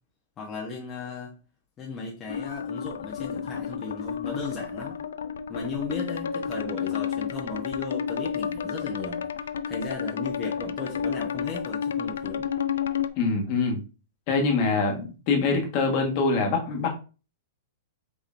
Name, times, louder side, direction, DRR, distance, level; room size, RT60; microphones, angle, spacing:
voice 1, 0.4-1.3 1.8-5.0 5.5-9.3 9.7-12.5 14.7-15.0, left 4 dB, 20° left, -2 dB, 1.0 m, -36 dB
sound 1, 2.3-13.1, left 7 dB, 90° left, 0.4 m, -31 dB
voice 2, 13.2-13.8 14.3-16.9, left 4 dB, 40° left, 2 dB, 1.5 m, -24 dB
5.2 x 3.8 x 2.6 m, 0.34 s
hypercardioid pair, 150°, 0 cm